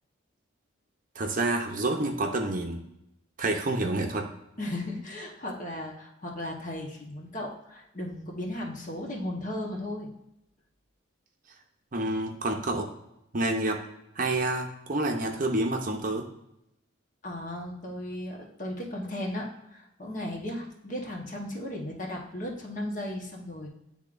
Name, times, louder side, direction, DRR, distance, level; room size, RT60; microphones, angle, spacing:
voice 1, 1.2-2.8 3.4-4.3 11.9-12.9 13.3-13.8 14.2-16.2, right 2 dB, 40° right, 3 dB, 0.7 m, -28 dB
voice 2, 4.6-10.1 17.2-23.7, left 1 dB, 40° left, 0 dB, 1.1 m, -36 dB
10.5 x 3.6 x 2.5 m, 0.84 s
head